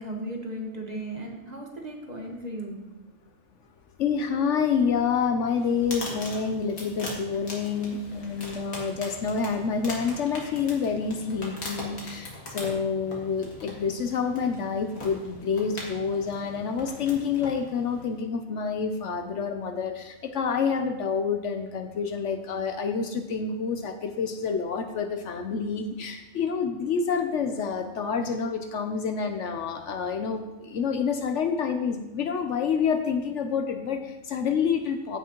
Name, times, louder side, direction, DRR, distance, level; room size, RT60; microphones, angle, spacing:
voice 1, 0.0-2.8, right 1 dB, 30° right, 0 dB, 1.2 m, -36 dB
voice 2, 4.0-35.2, left 6 dB, 65° left, 7 dB, 0.9 m, -28 dB
sound 1, 5.5-18.2, left 1 dB, 80° left, 2.3 m, -41 dB
15.0 x 5.9 x 3.0 m, 0.99 s
omnidirectional pair, 1.4 m